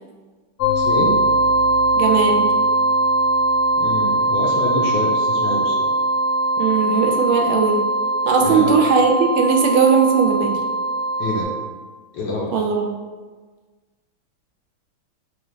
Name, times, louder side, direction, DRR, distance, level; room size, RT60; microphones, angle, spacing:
sound 1, 0.6-11.4, right 1 dB, 90° left, 0.8 m, -20 dB
voice 1, 0.7-1.1 3.8-5.9 8.4-8.7 11.2-11.5 12.1-12.5, left 2 dB, 70° left, -3 dB, 1.2 m, -26 dB
voice 2, 1.9-2.5 6.6-7.8 8.3-10.6 12.5-12.9, right 5 dB, 80° right, 2 dB, 1.4 m, -18 dB
4.8 x 2.4 x 3.0 m, 1.4 s
omnidirectional pair, 2.3 m